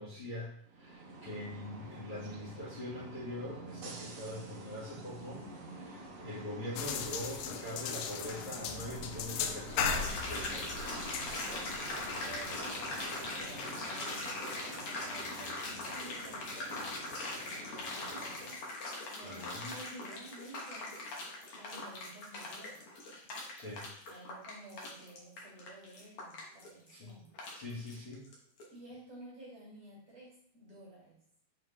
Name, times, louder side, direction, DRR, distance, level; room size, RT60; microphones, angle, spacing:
voice 1, 0.0-11.0 19.2-19.7 23.5-23.8 26.9-27.1 27.5-28.3, left 1 dB, 45° left, -10 dB, 2.0 m, -43 dB
sound 1, 0.7-18.8, right 1 dB, 75° right, 1.5 m, -48 dB
sound 2, 6.8-13.7, left 6 dB, 80° left, 2.2 m, -38 dB
sound 3, 9.9-28.3 28.6-28.7, left 2 dB, 60° left, 1.4 m, -41 dB
voice 2, 11.4-17.0 17.4-18.6 19.1-21.0 21.5-22.8 24.1-27.3 28.7-31.2, right 1 dB, 45° right, -7 dB, 3.0 m, -52 dB
6.7 x 4.2 x 3.3 m, 0.64 s
omnidirectional pair, 4.2 m